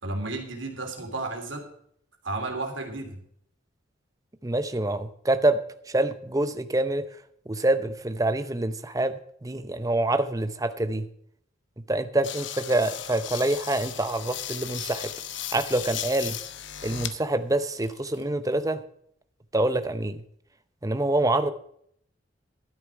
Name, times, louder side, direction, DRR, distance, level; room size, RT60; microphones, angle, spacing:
voice 1, 0.0-1.6 2.2-3.2, right 2 dB, 75° right, 3 dB, 3.1 m, -32 dB
voice 2, 4.4-5.6 5.9-7.0 7.5-11.1 11.9-15.1 15.5-16.4 16.8-18.8 19.5-20.2 20.8-21.5, right 2 dB, 15° right, 11 dB, 0.7 m, -26 dB
sound 1, 12.2-17.2 17.6-18.3, left 10 dB, 65° left, 0.9 m, -36 dB
12.5 x 10.5 x 4.6 m, 0.67 s
head